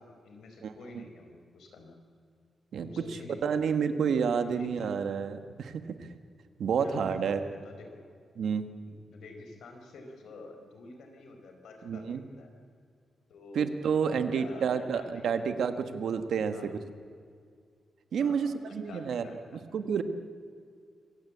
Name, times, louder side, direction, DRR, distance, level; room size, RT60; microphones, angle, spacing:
voice 1, 0.0-2.0 2.8-3.7 4.4-4.9 6.8-8.0 8.8-12.5 13.3-13.7 14.1-15.5 16.5-16.7 18.2-19.6, left 2 dB, 85° left, 4 dB, 4.4 m, -48 dB
voice 2, 0.6-1.0 2.7-2.9 3.4-6.1 6.6-7.4 8.4-8.7 11.8-12.2 13.5-16.8 18.1-19.3 19.7-20.0, right 6 dB, 70° right, 10 dB, 1.5 m, -29 dB
25.5 x 16.5 x 8.5 m, 2.2 s
wide cardioid pair, 165°, 0 cm